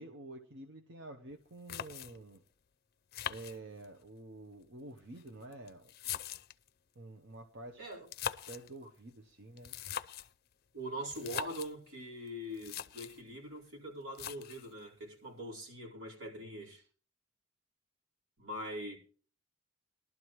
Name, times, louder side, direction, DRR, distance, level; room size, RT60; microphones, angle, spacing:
voice 1, 0.0-2.4 3.3-5.9 7.0-7.8 8.5-9.7 16.4-16.8, right 2 dB, 60° right, 0.9 m, -49 dB
sound 1, 1.3-1.4 1.7-2.4 3.1-4.1 5.0-6.7 7.9-8.7 9.6-10.4 11.1-11.7 12.3-12.4 12.5-13.2 14.1-14.7, left 9 dB, 50° left, 0.5 m, -41 dB
voice 2, 10.7-16.8 18.4-19.0, equal, 85° right, 4.4 m, -43 dB
19.5 x 12.0 x 3.1 m
head